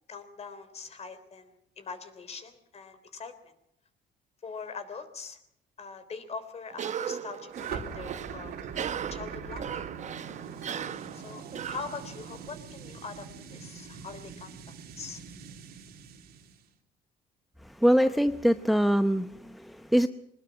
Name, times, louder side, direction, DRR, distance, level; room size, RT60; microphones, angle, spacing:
voice 1, 0.1-3.5 4.4-5.4 5.8-8.5 9.1-9.8 11.1-15.2, left 5 dB, 40° left, 10 dB, 3.5 m, -42 dB
Cough, 6.7-12.5, right 8 dB, 45° right, 1.1 m, -38 dB
sound 1, 7.5-16.6, right 6 dB, 65° right, 3.2 m, -42 dB
voice 2, 17.6-20.1, equal, ahead, 10 dB, 0.7 m, -24 dB
22.0 x 20.0 x 5.9 m, 0.75 s
cardioid pair, 110°, 17 cm